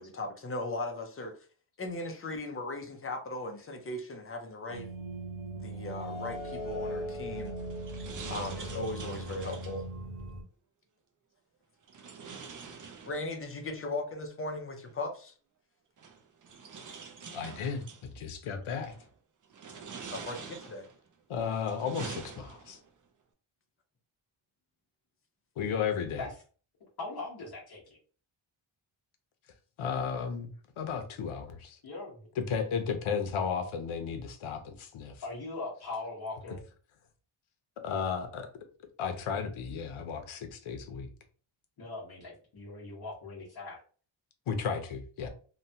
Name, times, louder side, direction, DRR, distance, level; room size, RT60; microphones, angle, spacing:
voice 1, 0.0-1.4 1.8-4.9 5.5-7.6 8.3-9.9 12.6-15.3 20.1-20.9, left 2 dB, 30° left, 0.4 m, -38 dB
sound 1, 4.7-10.4, right 1 dB, 90° right, 1.1 m, -39 dB
sound 2, 7.3-9.9 11.9-13.5 14.9-15.0 16.0-18.0 18.7-19.1 19.5-21.0 21.5-22.9, right 5 dB, 40° right, 0.4 m, -46 dB
voice 2, 17.3-18.9 21.3-22.8 25.6-26.2 29.8-30.5 30.8-31.8 32.4-35.2 37.8-38.5 39.0-41.1 44.5-45.3, left 6 dB, 80° left, 0.7 m, -34 dB
voice 3, 27.0-28.0 31.8-32.3 35.2-36.6 41.8-43.8, left 3 dB, 50° left, 0.9 m, -40 dB
3.0 x 2.2 x 2.6 m
wide cardioid pair, 175°, 49 cm